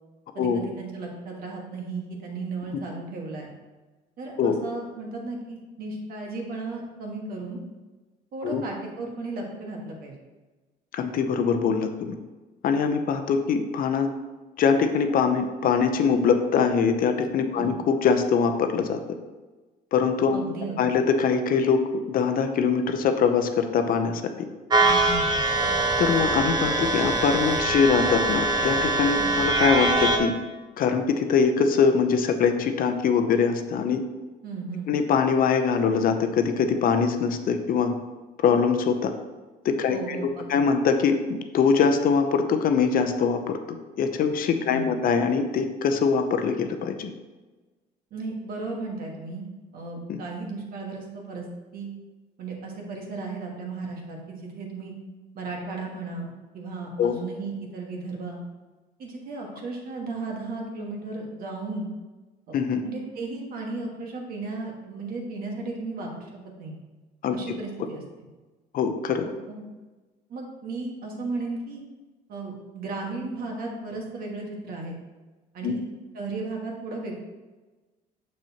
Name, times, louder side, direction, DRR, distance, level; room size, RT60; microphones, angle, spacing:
voice 1, 0.3-3.5 4.2-7.6 8.3-10.1 17.6-17.7 20.3-21.0 24.8-25.4 29.2-29.4 34.4-34.9 39.9-40.7 44.6-45.1 48.1-49.4 49.7-51.4 51.7-51.9 52.4-54.9 55.3-56.3 56.5-58.4 59.0-61.9 62.5-62.6 62.8-66.3 66.6-66.8 67.3-68.3 69.2-69.6 70.3-71.8 72.3-75.0 75.5-75.8 76.1-77.1, right 3 dB, 60° right, 0 dB, 1.6 m, -35 dB
voice 2, 10.9-12.1 12.6-14.1 14.6-19.0 19.9-20.5 20.8-21.8 22.1-24.2 26.0-30.3 30.8-34.0 34.9-37.9 38.4-39.1 39.6-40.2 40.5-41.1 41.5-43.6 44.0-47.1 50.1-50.2 57.0-57.1 62.5-62.8 67.2-67.4 68.7-69.3 75.6-75.7, left 6 dB, 55° left, 7 dB, 0.7 m, -23 dB
sound 1, 24.7-30.2, right 2 dB, 25° right, 0.9 m, -23 dB
6.7 x 6.2 x 2.9 m, 1.2 s
cardioid pair, 110°, 17 cm